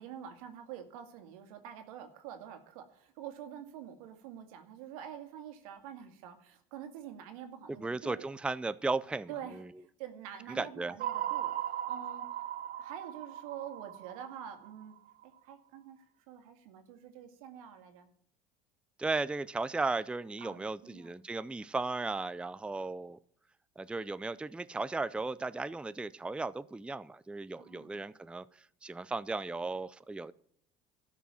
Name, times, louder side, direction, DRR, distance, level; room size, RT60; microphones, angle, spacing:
voice 1, 0.0-8.3 9.3-12.2 12.8-14.9 15.2-16.0 16.3-18.1 20.4-21.2 27.6-28.0, right 9 dB, 85° right, 7 dB, 2.1 m, -47 dB
voice 2, 7.7-9.6 10.5-10.9 19.0-23.2 23.8-30.3, right 3 dB, 5° right, 15 dB, 0.4 m, -36 dB
sound 1, 11.0-15.2, right 11 dB, 50° right, 0.9 m, -38 dB
12.5 x 6.1 x 8.7 m, 0.65 s
supercardioid pair, 95°, 18 cm